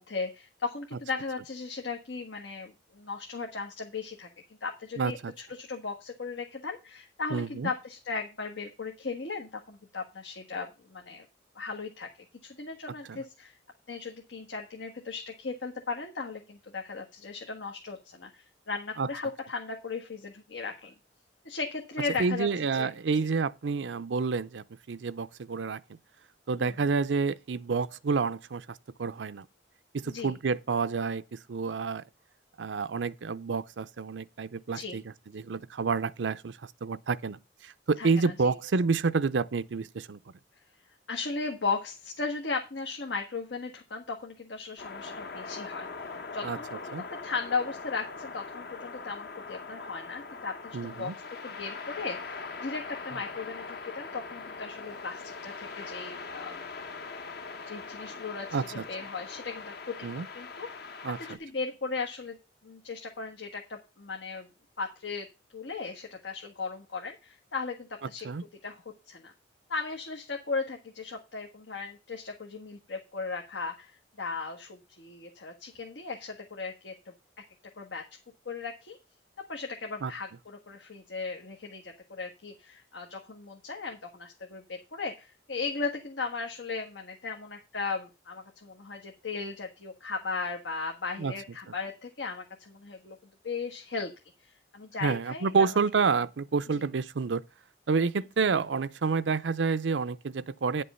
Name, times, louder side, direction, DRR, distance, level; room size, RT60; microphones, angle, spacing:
voice 1, 0.0-4.3 4.6-11.3 11.5-12.1 12.4-13.6 13.9-20.9 21.4-22.5 22.7-22.9 26.6-26.9 30.1-30.3 34.7-35.0 38.0-38.3 41.1-46.9 47.2-51.1 51.4-56.6 57.7-62.4 62.6-64.5 64.8-65.3 65.5-68.3 68.6-69.3 69.7-77.1 77.8-78.0 78.4-79.0 79.5-93.2 93.4-94.1 94.4-95.7 96.7-96.9, left 4 dB, 90° left, 1.4 m, -37 dB
voice 2, 5.0-5.3 7.3-7.7 13.1-13.2 19.0-19.1 22.2-25.8 26.5-29.5 29.9-32.0 32.6-40.2 46.4-46.6 46.9-47.0 50.7-51.2 58.5-58.8 60.0-60.3 61.0-61.4 68.2-68.4 80.0-80.1 91.2-91.3 95.0-97.4 97.9-100.8, right 4 dB, 85° right, 0.5 m, -29 dB
sound 1, 44.8-61.4, left 4 dB, 60° left, 0.9 m, -41 dB
10.0 x 5.4 x 5.5 m
head